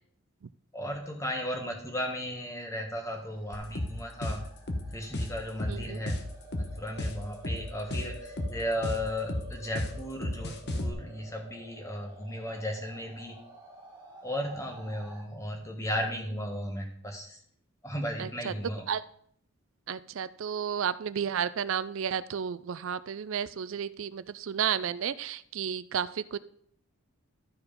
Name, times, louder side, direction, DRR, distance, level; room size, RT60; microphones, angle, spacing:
voice 1, 0.7-4.4 4.9-6.2 6.8-13.4 14.2-17.4 17.8-18.8, equal, 15° left, 1 dB, 1.6 m, -35 dB
sound 1, 3.0-15.2, right 1 dB, 20° right, 2.2 m, -50 dB
sound 2, 3.5-10.9, left 1 dB, 50° left, 1.1 m, -33 dB
voice 2, 5.7-6.0 18.2-19.0 19.9-26.4, right 8 dB, 65° right, 16 dB, 0.4 m, -32 dB
12.5 x 4.7 x 5.2 m, 0.64 s
head